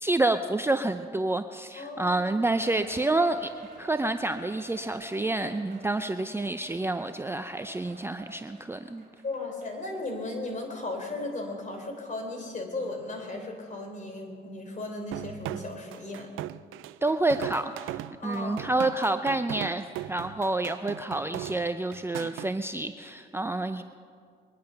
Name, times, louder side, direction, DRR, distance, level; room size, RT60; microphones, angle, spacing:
voice 1, 0.0-3.5 3.8-9.0 17.0-17.9 18.2-23.8, right 2 dB, 10° right, 8 dB, 0.5 m, -28 dB
voice 2, 1.8-2.2 9.2-16.3 18.2-18.6 23.7-23.8, left 2 dB, 40° left, 3 dB, 3.7 m, -36 dB
Cheering, 2.3-10.1 10.5-10.6 11.2-11.3, right 3 dB, 40° right, 3.4 m, -50 dB
sound 1, 15.1-22.5, right 15 dB, 85° right, 0.4 m, -38 dB
22.5 x 10.5 x 5.8 m, 2.1 s
cardioid pair, 90°, 20 cm